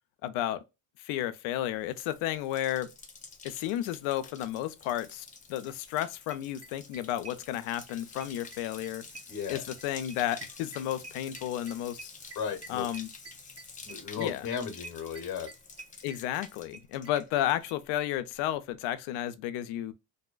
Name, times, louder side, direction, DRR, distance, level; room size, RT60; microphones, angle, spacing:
voice 1, 0.2-0.6 1.0-2.9 3.4-9.0 9.5-12.1 12.7-13.1 14.2-14.5 16.0-19.9, left 12 dB, 75° left, 0.6 m, -32 dB
Bathtub (filling or washing), 1.8-17.9 18.1-18.7, left 4 dB, 15° left, 0.4 m, -49 dB
sound 1, 5.7-5.8 6.0-6.1 6.3-17.4 17.7-17.8 18.0-18.1 18.3-18.4, right 3 dB, 30° right, 0.8 m, -48 dB
voice 2, 9.3-9.6 12.3-12.8 13.8-15.5, left 7 dB, 50° left, 0.9 m, -35 dB
2.7 x 2.1 x 2.3 m
supercardioid pair, 80°, 49 cm